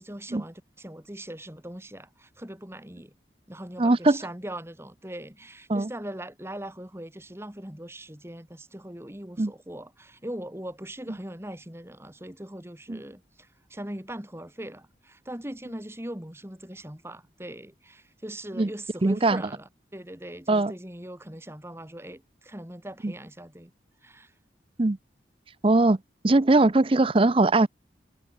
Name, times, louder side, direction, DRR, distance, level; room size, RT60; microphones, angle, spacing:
voice 1, 0.0-3.1 3.5-23.7 24.0-24.3, right 1 dB, 15° right, 2.0 m, -40 dB
voice 2, 3.8-4.2 5.7-5.9 9.4-9.5 12.9-13.0 18.6-18.7 19.0-19.4 20.5-20.7 23.0-23.1 24.8-25.0 25.6-26.0 26.2-27.7, right 2 dB, 30° right, 0.5 m, -20 dB
head